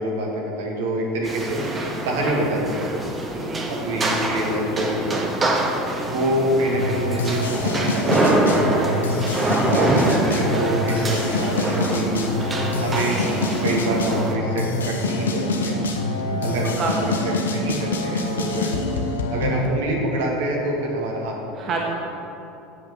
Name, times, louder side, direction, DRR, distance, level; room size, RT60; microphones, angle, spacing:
voice 1, 0.0-1.6 2.0-3.0 3.7-5.3 6.0-9.1 9.7-10.0 10.3-12.2 12.8-13.2 13.6-15.8 16.4-18.8 19.3-21.9, right 1 dB, 65° right, -2 dB, 2.0 m, -26 dB
sound 1, 1.2-14.4, right 2 dB, 20° right, 1.5 m, -25 dB
voice 2, 3.2-3.6 9.9-10.2 16.3-17.0 21.6-21.9, right 4 dB, 40° right, -2 dB, 1.5 m, -29 dB
sound 2, 6.7-19.7, left 2 dB, 75° left, 0.9 m, -25 dB
8.1 x 8.1 x 6.9 m, 2.7 s
figure-of-eight pair, 70°, 0 cm